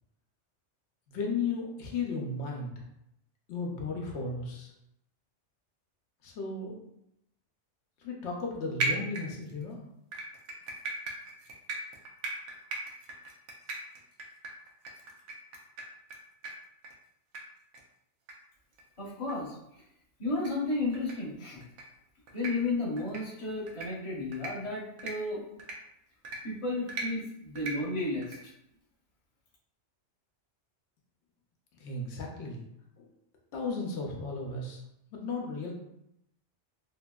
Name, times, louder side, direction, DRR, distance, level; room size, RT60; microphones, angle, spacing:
voice 1, 1.1-2.7 3.5-4.7 6.2-6.8 8.0-9.8 31.7-32.6 33.0-33.1 33.5-34.8 35.1-35.7, left 3 dB, 75° left, -1 dB, 0.9 m, -35 dB
sound 1, 8.8-9.6 10.1-16.2 16.4-16.5 16.8-16.9 17.3-17.4 17.7-17.8 18.3-18.4 18.7-18.8 19.3-19.4 20.4-20.5 20.9-21.1 21.6-21.8 22.3-22.5 23.0-23.2 23.7-23.9 24.3-24.5 25.0-25.1 25.6-25.7 26.2-26.4 26.9-27.1 27.6-27.7 28.2-28.4, right 3 dB, 80° right, 0.9 m, -36 dB
voice 2, 19.0-19.6 20.2-21.6 22.3-25.4 26.4-28.5, left 2 dB, 30° left, -5 dB, 0.7 m, -33 dB
2.8 x 2.6 x 2.2 m, 0.81 s
omnidirectional pair, 1.2 m